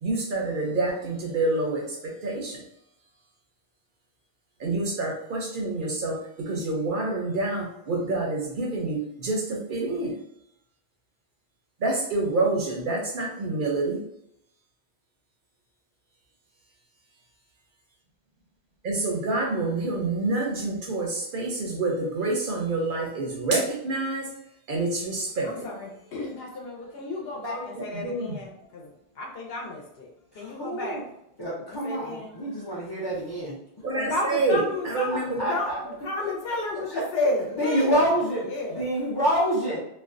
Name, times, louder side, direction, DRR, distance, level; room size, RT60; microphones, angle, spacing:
voice 1, 0.0-2.6 4.6-10.2 11.8-14.0 18.8-24.3 24.7-25.7 27.4-28.4 33.8-36.0, right 2 dB, 60° right, -1 dB, 0.6 m, -28 dB
voice 2, 25.4-30.1 30.3-31.0 31.7-32.6 33.9-38.2 38.5-39.1, left 2 dB, 70° left, 0 dB, 0.8 m, -32 dB
voice 3, 30.4-31.0 31.4-33.6 35.1-35.8 36.2-36.3 36.9-37.0 37.6-38.4 38.7-39.8, equal, 40° left, -6 dB, 0.3 m, -27 dB
2.4 x 2.1 x 2.4 m, 0.78 s
omnidirectional pair, 1.1 m